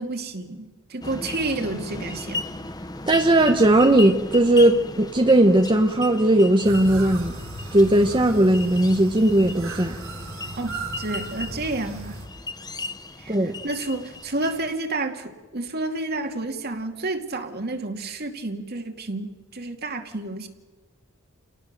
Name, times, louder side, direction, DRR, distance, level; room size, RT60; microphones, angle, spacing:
voice 1, 0.0-2.4 10.6-12.2 13.2-13.4 13.6-20.5, right 2 dB, 50° right, 2.3 m, -30 dB
sound 1, 1.0-14.8, left 2 dB, 20° left, 1.0 m, -36 dB
voice 2, 3.1-7.3 7.7-10.0 13.3-13.6, right 1 dB, 25° right, 1.1 m, -18 dB
sound 2, 6.6-12.3, right 2 dB, 85° right, 6.9 m, -36 dB
30.0 x 19.0 x 6.7 m
head